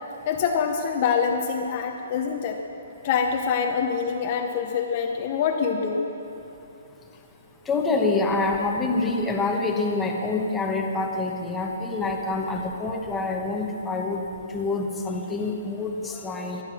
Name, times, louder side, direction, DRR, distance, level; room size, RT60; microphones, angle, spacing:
voice 1, 0.2-2.6 3.0-6.1, left 6 dB, 25° left, 2 dB, 0.8 m, -25 dB
voice 2, 7.7-14.2 14.5-16.6, left 3 dB, 5° left, 0 dB, 1.0 m, -26 dB
24.0 x 9.5 x 6.1 m, 2.9 s
hypercardioid pair, 175°, 0 cm